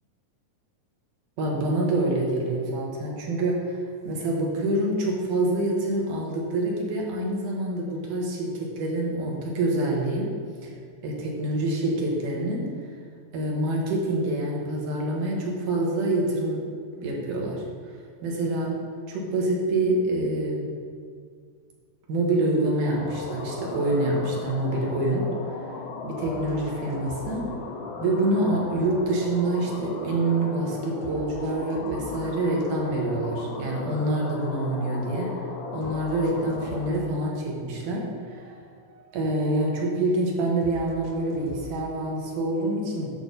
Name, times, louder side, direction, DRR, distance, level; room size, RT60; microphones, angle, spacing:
voice 1, 1.4-10.3 10.6-10.7 11.0-12.6 13.3-16.6 17.0-18.7 19.1-20.7 22.1-25.6 26.0-27.5 28.0-38.5 39.1-43.1, right 2 dB, 70° right, -2 dB, 2.7 m, -26 dB
sound 1, 22.9-37.0, left 3 dB, 80° left, 2.7 m, -37 dB
sound 2, 26.2-28.2 28.6-30.4 31.0-33.0 33.4-35.2 35.8-38.0 38.2-40.0 40.6-42.6, right 2 dB, 90° right, 2.6 m, -46 dB
8.4 x 6.9 x 4.0 m, 2.1 s
omnidirectional pair, 4.1 m